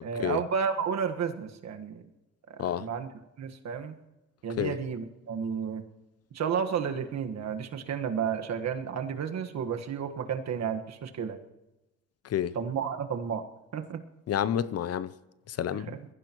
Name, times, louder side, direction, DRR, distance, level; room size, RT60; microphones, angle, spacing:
voice 1, 0.0-2.0 2.5-3.1 3.4-4.0 4.4-5.8 6.3-11.4 12.5-13.4 13.7-14.0, right 7 dB, 60° right, 1.5 m, -32 dB
voice 2, 14.3-15.1 15.5-15.9, left 10 dB, 55° left, 0.7 m, -29 dB
22.0 x 15.0 x 3.0 m
cardioid pair, 90°, 30 cm